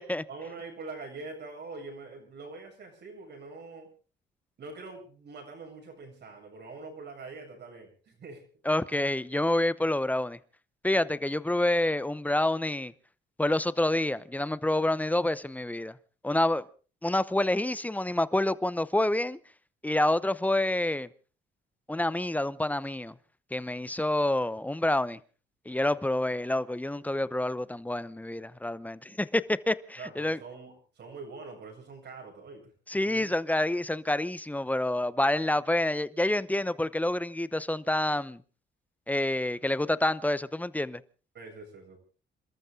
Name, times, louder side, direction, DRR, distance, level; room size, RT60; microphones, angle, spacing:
voice 1, 0.3-3.9 4.6-8.4 29.1-29.2 30.0-32.7 33.0-33.3 41.3-42.0, right 3 dB, 60° right, 7.3 m, -44 dB
voice 2, 8.6-10.4 10.8-12.9 13.4-16.0 16.2-16.6 17.0-19.4 19.8-21.1 21.9-23.1 23.5-25.2 25.7-30.4 32.9-38.4 39.1-41.0, left 1 dB, 10° left, 0.8 m, -28 dB
28.0 x 13.5 x 3.8 m
cardioid pair, 90°, 20 cm